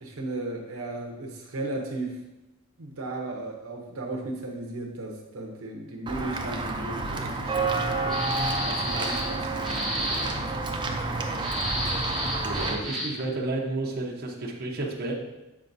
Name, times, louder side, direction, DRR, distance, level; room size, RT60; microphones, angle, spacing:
voice 1, 0.0-2.2 2.8-11.5, right 2 dB, 75° right, 0 dB, 0.8 m, -36 dB
Walk footsteps / Bell, 6.1-12.7, right 3 dB, 20° right, 0.5 m, -29 dB
sound 1, 8.1-9.3 9.6-10.3 11.4-13.2, equal, ahead, 1.7 m, -31 dB
voice 2, 12.4-15.1, right 2 dB, 50° right, -2 dB, 0.9 m, -31 dB
7.2 x 5.1 x 2.6 m, 1.0 s
head